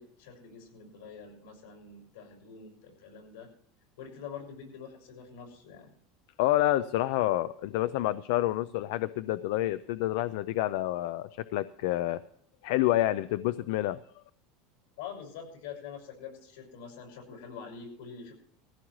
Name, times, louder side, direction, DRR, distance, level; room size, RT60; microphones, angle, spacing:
voice 1, 0.0-3.5 4.0-5.9 15.0-18.3, left 6 dB, 75° left, 1 dB, 5.8 m, -45 dB
voice 2, 6.4-12.2 12.6-14.0, left 15 dB, 60° left, 15 dB, 0.5 m, -28 dB
20.0 x 15.0 x 3.2 m, 0.63 s
supercardioid pair, 180°, 0 cm